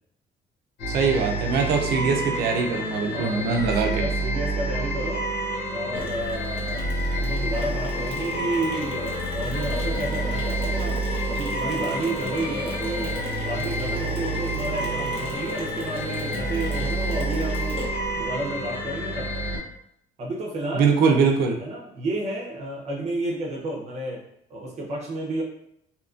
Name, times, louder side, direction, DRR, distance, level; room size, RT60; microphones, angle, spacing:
sound 1, 0.8-19.6, right 1 dB, 85° left, 0.8 m, -28 dB
voice 1, 0.9-4.0 20.7-21.6, right 5 dB, 70° right, 4 dB, 0.5 m, -22 dB
voice 2, 3.1-5.3 5.7-6.8 7.1-11.0 11.3-13.1 13.4-17.8 18.2-19.6 20.2-21.2 21.6-24.2 24.5-25.4, right 2 dB, 40° right, -3 dB, 0.7 m, -31 dB
Mechanisms, 5.9-18.3, left 1 dB, 30° left, 0.9 m, -36 dB
2.8 x 2.5 x 2.4 m, 0.74 s
cardioid pair, 110°, 17 cm